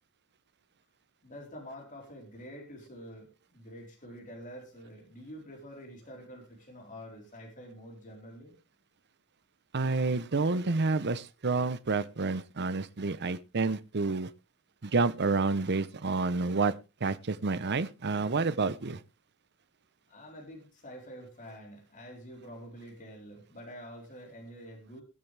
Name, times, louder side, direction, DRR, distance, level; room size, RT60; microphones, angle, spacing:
voice 1, 1.2-8.5 20.1-25.0, equal, 35° left, 4.2 m, -47 dB
voice 2, 9.7-14.3 14.8-16.7 17.0-19.0, right 3 dB, 50° right, 0.8 m, -29 dB
21.5 x 7.6 x 3.4 m
head